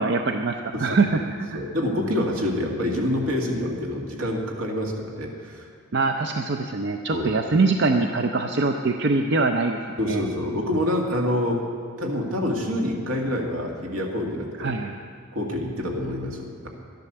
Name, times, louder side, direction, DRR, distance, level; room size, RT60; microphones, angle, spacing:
voice 1, 0.0-1.6 5.9-9.8 10.1-10.2 14.6-15.0, right 3 dB, 55° right, 4 dB, 0.5 m, -23 dB
voice 2, 1.5-5.7 7.1-7.3 10.0-11.7 12.0-14.8 15.3-16.7, left 1 dB, 80° right, 0 dB, 2.0 m, -27 dB
12.0 x 10.5 x 6.8 m, 2.1 s
head